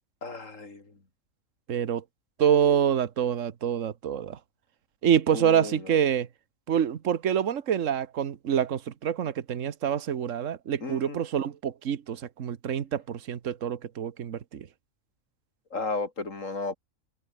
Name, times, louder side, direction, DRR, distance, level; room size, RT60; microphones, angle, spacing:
voice 1, 0.2-0.9 5.3-6.0 10.8-11.2 15.7-16.8, left 3 dB, 70° left, 3.5 m, -34 dB
voice 2, 1.7-2.0 2.4-4.4 5.0-6.3 6.7-14.7, right 8 dB, 70° right, 1.5 m, -26 dB
omnidirectional pair, 1.4 m